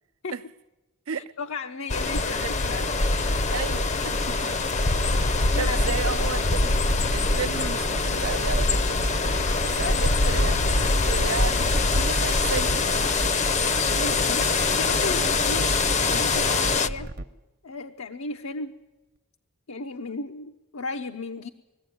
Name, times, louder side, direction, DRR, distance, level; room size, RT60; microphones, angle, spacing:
voice 1, 1.1-3.1 5.5-5.8 9.8-10.0 13.9-14.5 14.8-15.7 16.1-17.1 17.6-18.7 19.7-21.5, left 3 dB, 80° left, 0.8 m, -34 dB
sound 1, 1.9-16.9, left 3 dB, 35° left, 0.6 m, -24 dB
voice 2, 3.5-4.6 5.5-6.7 7.1-9.0 9.6-13.1, right 6 dB, 80° right, 0.7 m, -33 dB
sound 2, 6.8-17.2, right 1 dB, 50° right, 0.9 m, -33 dB
21.5 x 15.0 x 9.5 m
head